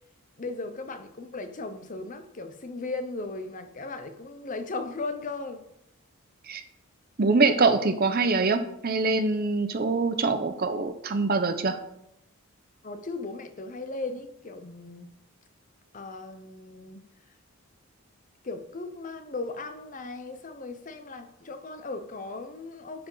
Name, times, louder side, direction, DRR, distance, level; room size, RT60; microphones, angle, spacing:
voice 1, 0.4-5.6 12.8-15.1 15.9-17.0 18.4-23.1, left 3 dB, 35° left, 9 dB, 0.6 m, -37 dB
voice 2, 7.2-11.8, right 3 dB, 45° right, 9 dB, 0.7 m, -24 dB
10.5 x 4.9 x 3.9 m, 0.79 s
head